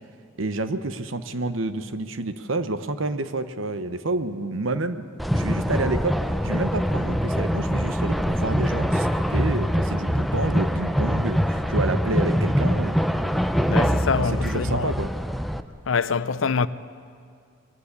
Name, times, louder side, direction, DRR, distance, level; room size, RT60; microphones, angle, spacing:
voice 1, 0.4-5.1 5.3-6.2 6.4-13.0 14.1-15.1, right 2 dB, 80° right, 1.1 m, -29 dB
sound 1, 5.2-15.6, equal, ahead, 0.5 m, -24 dB
voice 2, 13.7-14.9 15.9-16.7, left 5 dB, 80° left, 0.6 m, -25 dB
23.0 x 16.5 x 8.5 m
head